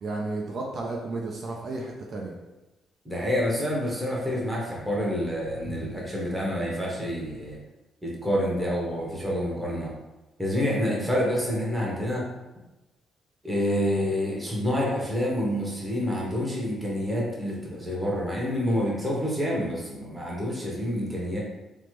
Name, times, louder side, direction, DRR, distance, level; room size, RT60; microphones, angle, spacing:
voice 1, 0.0-2.3, right 2 dB, 55° right, -1 dB, 0.4 m, -33 dB
voice 2, 3.0-7.6 8.0-9.9 10.4-12.3 13.4-21.4, equal, 10° right, -4 dB, 0.9 m, -28 dB
3.2 x 2.0 x 3.0 m, 1.1 s
cardioid pair, 90°, 0 cm